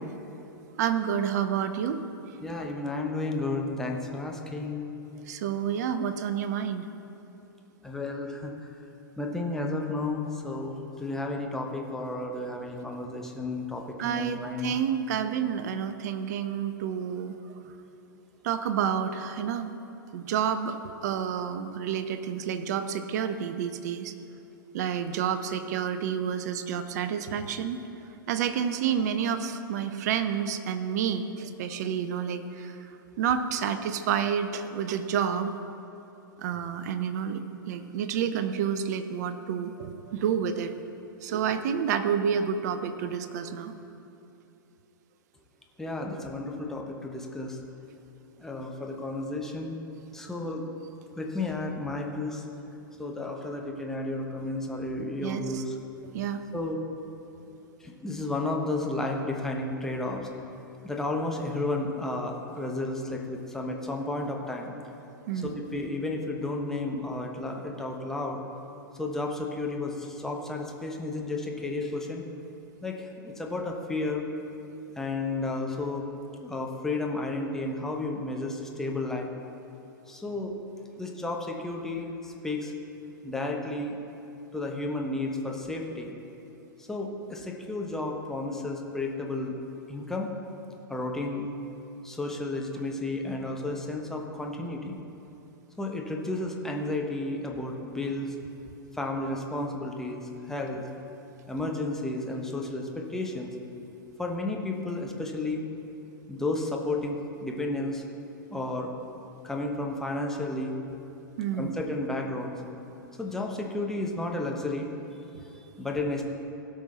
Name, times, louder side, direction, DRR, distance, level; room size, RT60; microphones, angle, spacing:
voice 1, 0.8-2.0 2.3-2.4 5.3-6.9 14.0-17.4 18.4-19.7 20.1-24.1 24.7-27.8 28.3-32.8 33.2-35.6 36.4-37.4 37.7-40.7 41.2-43.7 55.2-55.6 56.0-56.4 65.3-65.6 111.4-111.7, right 8 dB, 50° right, 10 dB, 0.7 m, -29 dB
voice 2, 2.4-4.9 7.8-8.5 9.2-14.8 45.8-47.6 48.4-49.8 50.1-50.6 51.2-52.4 53.0-55.8 56.5-56.8 57.8-60.3 60.8-64.7 65.3-68.4 69.0-72.2 72.8-74.2 75.0-76.0 76.4-79.3 80.1-80.5 81.0-82.7 83.2-84.0 84.5-86.1 86.8-89.6 89.9-90.3 90.9-91.5 92.0-95.0 95.8-98.4 98.9-100.9 101.5-103.5 104.2-105.6 106.3-108.0 108.5-108.9 109.4-110.7 111.6-112.6 113.2-114.9 115.8-116.2, left 2 dB, 5° left, 0 dB, 1.1 m, -32 dB
16.5 x 6.3 x 4.2 m, 2.9 s
figure-of-eight pair, 100°, 12 cm